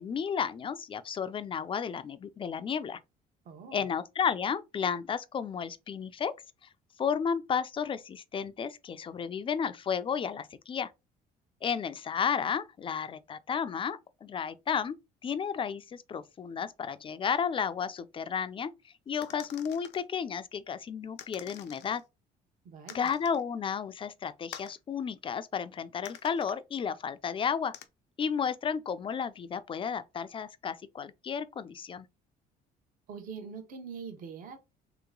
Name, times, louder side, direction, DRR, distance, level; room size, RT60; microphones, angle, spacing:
voice 1, 0.0-3.0 3.7-6.3 7.0-10.9 11.6-14.9 15.2-22.0 22.9-27.7 28.2-32.1, left 7 dB, 30° left, 0.4 m, -33 dB
voice 2, 3.4-3.9 22.6-23.1 33.1-34.6, right 6 dB, 55° right, 0.9 m, -43 dB
sound 1, 19.2-20.0 21.2-22.0 22.9-23.4 24.5-24.8 26.1-26.6 27.7-27.9, left 11 dB, 80° left, 0.6 m, -47 dB
3.2 x 2.9 x 3.7 m
cardioid pair, 110°, 17 cm